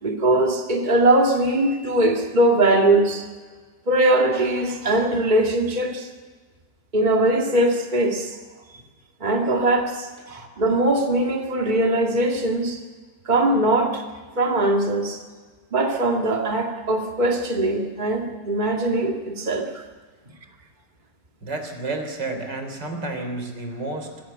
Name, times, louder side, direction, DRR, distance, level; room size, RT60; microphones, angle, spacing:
voice 1, 0.0-3.3 3.9-6.1 6.9-8.4 9.2-12.8 13.3-14.0 14.4-15.2 15.7-19.8, right 1 dB, 25° right, 2 dB, 2.2 m, -21 dB
voice 2, 21.4-24.3, right 2 dB, 85° right, 5 dB, 4.2 m, -31 dB
25.0 x 16.0 x 7.9 m, 1.4 s
omnidirectional pair, 1.8 m